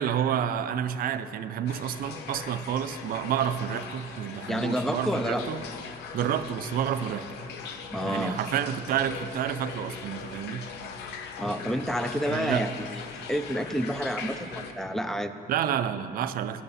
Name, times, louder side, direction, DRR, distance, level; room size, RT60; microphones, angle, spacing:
voice 1, 0.0-5.6 6.1-7.3 8.0-10.7 12.3-12.7 15.5-16.6, right 9 dB, 60° right, 11 dB, 0.5 m, -29 dB
sound 1, 1.7-14.7, left 6 dB, 80° left, 0.8 m, -40 dB
voice 2, 4.5-5.4 7.9-8.4 11.4-13.0 13.3-15.3, equal, ahead, 9 dB, 0.5 m, -29 dB
17.5 x 6.7 x 4.2 m, 2.6 s
cardioid pair, 110°, 17 cm